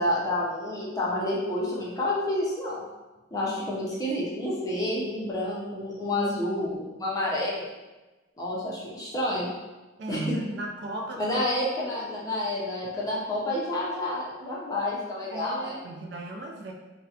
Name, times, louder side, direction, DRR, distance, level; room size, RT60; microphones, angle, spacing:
voice 1, 0.0-2.8 3.3-7.7 8.4-9.5 10.1-10.4 11.2-15.8, left 1 dB, 15° left, -6 dB, 0.4 m, -29 dB
voice 2, 10.0-11.3 15.3-16.7, right 2 dB, 55° right, 1 dB, 0.3 m, -36 dB
2.7 x 2.0 x 2.3 m, 1.1 s
head